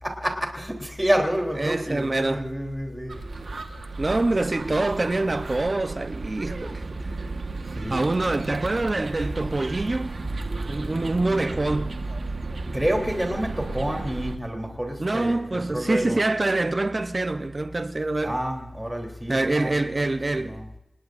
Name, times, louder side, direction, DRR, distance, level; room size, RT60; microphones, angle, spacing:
voice 1, 0.0-3.1 7.8-8.0 12.7-16.2 18.2-20.6, equal, 10° right, 3.5 m, -28 dB
voice 2, 1.6-2.5 4.0-6.8 7.9-10.3 10.7-12.0 15.0-18.4 19.3-20.6, right 2 dB, 45° right, 0.8 m, -25 dB
sound 1, 3.1-14.4, right 3 dB, 75° right, 1.3 m, -34 dB
27.0 x 19.5 x 2.6 m
cardioid pair, 50°, 0 cm